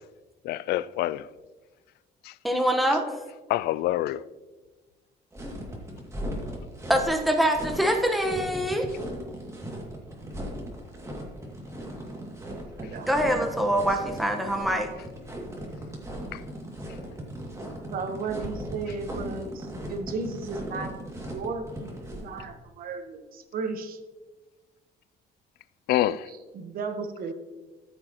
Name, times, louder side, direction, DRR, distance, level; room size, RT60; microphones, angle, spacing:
voice 1, 0.4-1.3 2.2-2.3 3.5-4.2 16.3-16.4 25.9-26.3, left 14 dB, 70° left, 0.4 m, -26 dB
voice 2, 2.4-3.1 6.9-8.9 13.1-14.9, equal, ahead, 1.2 m, -24 dB
sound 1, 5.3-22.4, equal, 15° right, 2.3 m, -38 dB
voice 3, 12.8-13.4 17.9-21.0 21.3-23.9 26.3-27.3, right 4 dB, 60° right, 1.1 m, -35 dB
14.0 x 7.7 x 3.0 m
cardioid pair, 110°, 17 cm